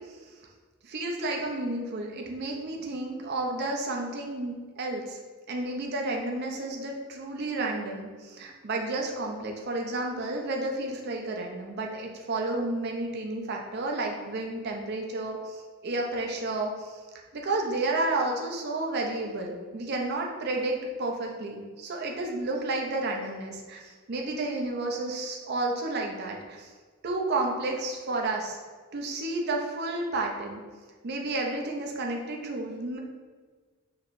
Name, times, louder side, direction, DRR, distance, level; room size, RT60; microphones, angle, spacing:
voice 1, 0.8-5.2 5.5-17.0 17.3-26.7 27.0-28.6 28.9-30.6 31.0-33.0, right 2 dB, 50° right, 1 dB, 0.5 m, -31 dB
4.4 x 3.0 x 2.5 m, 1.5 s
head